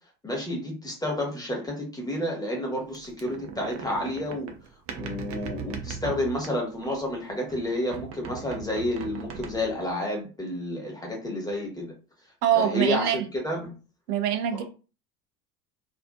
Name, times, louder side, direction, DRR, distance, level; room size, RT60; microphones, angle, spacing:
voice 1, 0.2-4.5 5.0-11.9 12.5-13.7 14.6-14.7, left 1 dB, 10° left, 1.0 m, -30 dB
sound 1, 2.9-7.1 7.5-9.9, right 6 dB, 30° right, 0.5 m, -39 dB
voice 2, 12.4-13.2 14.1-14.6, right 10 dB, 65° right, 0.7 m, -24 dB
2.6 x 2.5 x 2.3 m
figure-of-eight pair, 75°, 50 cm